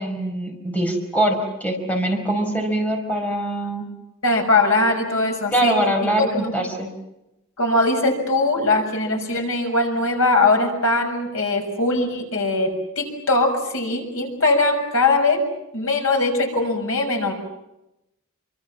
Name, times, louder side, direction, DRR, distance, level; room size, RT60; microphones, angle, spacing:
voice 1, 0.0-3.8 5.5-6.9, right 1 dB, 5° left, 2 dB, 5.0 m, -23 dB
voice 2, 4.2-5.8 6.2-6.5 7.6-12.7 13.0-15.4 15.7-17.3, left 2 dB, 70° left, 2 dB, 6.7 m, -21 dB
28.5 x 25.0 x 7.3 m, 0.91 s
head